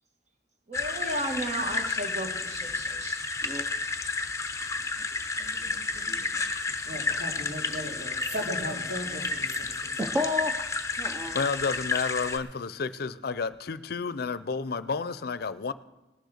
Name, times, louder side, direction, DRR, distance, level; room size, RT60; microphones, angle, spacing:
sound 1, 0.7-12.4, left 3 dB, 15° left, 0.7 m, -31 dB
voice 1, 0.7-3.2, right 1 dB, 40° right, 4 dB, 1.6 m, -34 dB
voice 2, 5.4-6.4 7.9-8.0 10.0-10.6 11.0-11.4, left 2 dB, 20° right, 5 dB, 0.7 m, -33 dB
voice 3, 6.8-9.9, equal, 65° right, -2 dB, 3.7 m, -37 dB
voice 4, 11.3-15.7, left 5 dB, 60° left, 15 dB, 0.5 m, -31 dB
19.0 x 6.7 x 6.5 m, 1.0 s
head